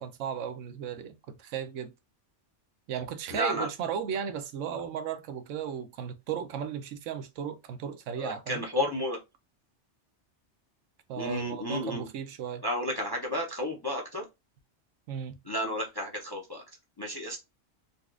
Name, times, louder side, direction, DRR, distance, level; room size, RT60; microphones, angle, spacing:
voice 1, 0.0-1.9 2.9-8.6 11.1-12.6 15.1-15.4, right 8 dB, 85° right, 0.9 m, -35 dB
voice 2, 3.3-3.7 8.2-9.2 11.2-12.1 12.6-14.2 15.5-16.6 17.0-17.4, left 1 dB, 30° left, 0.4 m, -32 dB
4.0 x 2.3 x 2.3 m
omnidirectional pair, 1.3 m